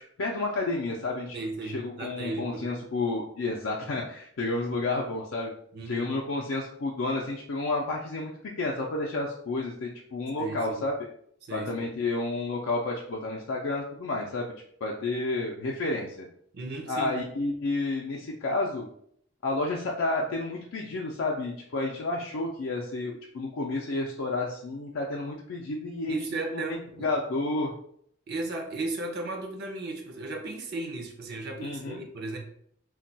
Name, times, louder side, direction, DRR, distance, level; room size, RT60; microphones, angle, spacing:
voice 1, 0.2-5.5 5.9-8.3 8.6-10.9 11.5-14.5 14.8-16.3 16.9-18.9 19.4-26.2 26.5-27.7 31.6-32.0, left 2 dB, 80° left, -2 dB, 0.4 m, -31 dB
voice 2, 1.3-2.7 5.7-6.1 10.4-10.8 11.5-11.9 16.5-17.3 26.1-27.1 28.3-32.4, right 2 dB, 55° right, 3 dB, 0.5 m, -35 dB
2.2 x 2.2 x 3.9 m, 0.66 s
head